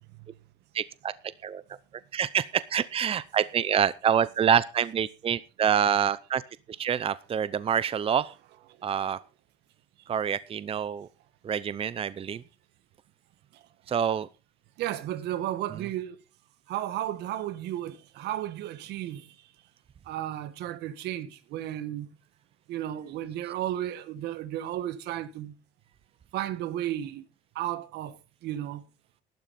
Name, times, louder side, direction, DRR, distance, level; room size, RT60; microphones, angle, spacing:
voice 1, 0.7-1.1 1.4-1.6 2.1-6.4 6.7-8.3 8.8-9.2 10.1-11.1 11.4-12.4 13.9-14.3, right 8 dB, 35° right, 0.7 m, -26 dB
voice 2, 14.8-16.2 16.7-19.2 20.1-22.1 22.7-25.5 26.3-27.2 27.5-28.1 28.4-28.8, right 12 dB, 80° right, 1.5 m, -33 dB
12.5 x 12.5 x 4.2 m
cardioid pair, 110°, 17 cm